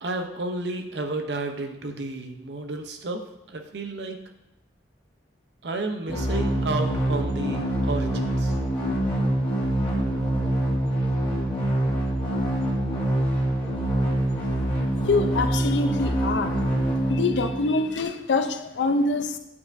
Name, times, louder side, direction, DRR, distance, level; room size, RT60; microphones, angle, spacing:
voice 1, 0.0-4.2 5.6-8.6, right 2 dB, 65° right, 5 dB, 0.7 m, -32 dB
sound 1, 6.1-18.0, right 1 dB, 30° left, 1.4 m, -25 dB
voice 2, 15.1-16.6 17.1-19.4, left 3 dB, 75° left, 8 dB, 0.5 m, -25 dB
8.3 x 4.5 x 2.6 m, 0.87 s
head